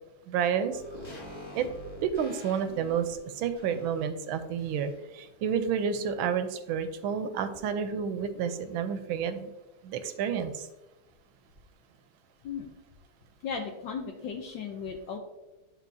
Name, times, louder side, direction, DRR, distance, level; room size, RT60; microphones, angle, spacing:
voice 1, 0.3-0.8 1.6-1.7 2.0-9.5 9.8-10.7, right 7 dB, 80° right, 9 dB, 1.4 m, -30 dB
sound 1, 0.7-5.2 5.5-5.6, equal, 50° left, 0.3 m, -46 dB
voice 2, 13.4-15.2, left 6 dB, 70° left, 2 dB, 1.2 m, -36 dB
11.0 x 4.1 x 2.7 m, 1.0 s
omnidirectional pair, 2.2 m